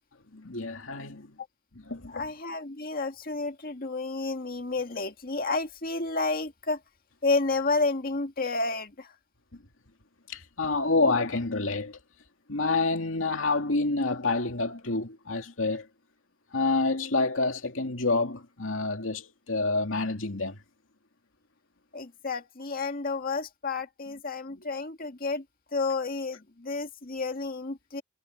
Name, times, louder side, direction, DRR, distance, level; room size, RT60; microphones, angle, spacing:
voice 1, 0.3-1.3 1.7-2.3 10.3-12.0 12.5-15.8 16.5-20.6, left 3 dB, 85° left, 2.5 m, -28 dB
voice 2, 2.1-6.8 7.2-9.1 21.9-25.4 25.7-28.0, left 3 dB, 50° left, 2.0 m, -30 dB
head